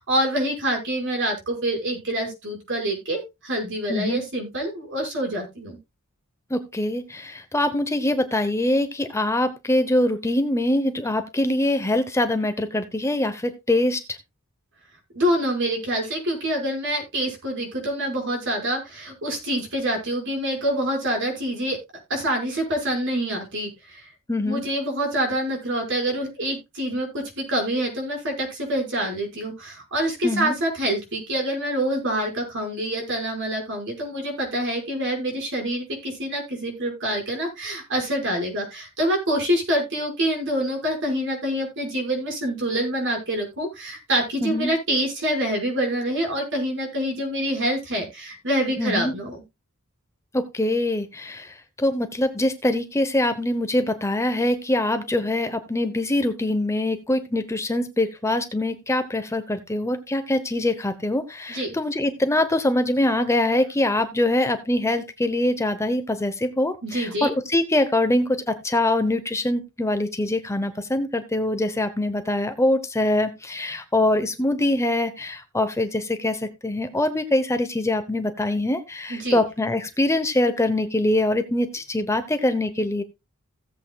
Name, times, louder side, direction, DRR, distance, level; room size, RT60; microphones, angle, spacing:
voice 1, 0.0-5.8 15.1-21.8 22.1-24.1 24.4-49.4 61.5-61.7 66.8-67.3 79.1-79.4, right 1 dB, 60° right, 2 dB, 5.5 m, -26 dB
voice 2, 3.9-4.2 6.5-14.2 24.3-24.6 30.2-30.5 44.4-44.7 48.8-49.1 50.3-83.0, left 1 dB, 15° left, 9 dB, 0.9 m, -23 dB
16.5 x 8.1 x 2.3 m, 0.23 s
head